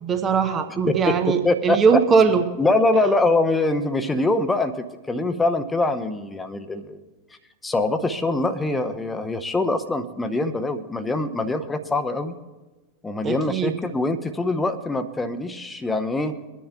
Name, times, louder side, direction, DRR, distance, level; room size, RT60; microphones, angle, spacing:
voice 1, 0.0-2.4 13.2-13.7, right 5 dB, 25° right, 7 dB, 0.8 m, -20 dB
voice 2, 0.9-2.0 2.6-7.0 7.6-12.4 13.0-16.4, left 2 dB, 10° left, 9 dB, 0.8 m, -23 dB
24.0 x 10.0 x 2.4 m, 1.2 s
figure-of-eight pair, 90°, 0 cm